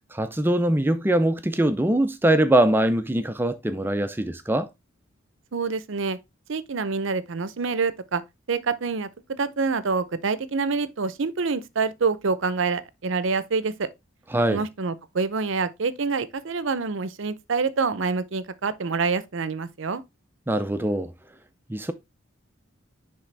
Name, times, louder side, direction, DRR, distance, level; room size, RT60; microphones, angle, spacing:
voice 1, 0.1-4.7 14.3-14.6 20.5-21.1 21.7-21.9, right 1 dB, 10° right, 0.4 m, -22 dB
voice 2, 5.5-6.2 6.5-8.2 8.5-13.9 14.5-20.0, right 4 dB, 65° right, 0.6 m, -26 dB
10.0 x 3.5 x 3.3 m
head